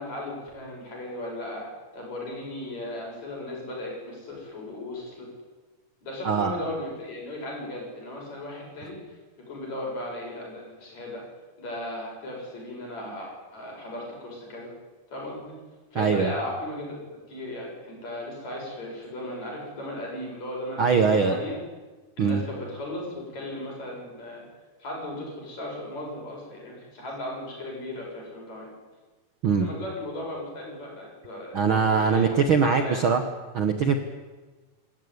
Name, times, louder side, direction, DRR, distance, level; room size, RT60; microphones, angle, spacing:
voice 1, 0.0-5.3 6.0-9.2 9.5-11.2 11.6-14.7 15.1-15.6 15.9-17.0 17.3-21.6 22.2-24.4 24.8-28.7 29.5-33.1, left 1 dB, 60° left, -2 dB, 8.5 m, -36 dB
voice 2, 6.2-6.6 16.0-16.3 20.8-21.4 22.2-22.4 29.4-29.7 31.5-33.2 33.5-34.0, right 5 dB, 55° right, 6 dB, 1.5 m, -22 dB
26.5 x 14.0 x 9.7 m, 1.3 s
omnidirectional pair, 3.6 m